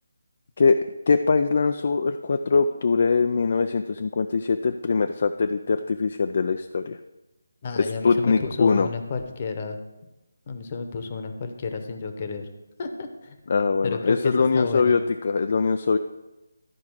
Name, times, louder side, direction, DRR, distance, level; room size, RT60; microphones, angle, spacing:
voice 1, 1.1-7.0 7.8-8.9 13.5-16.0, left 4 dB, 50° left, 8 dB, 0.4 m, -22 dB
voice 2, 7.6-9.8 10.5-12.5 12.8-13.4 13.8-15.0, left 4 dB, 35° left, 6 dB, 1.0 m, -31 dB
12.5 x 4.7 x 4.7 m, 1.0 s
figure-of-eight pair, 160°, 0 cm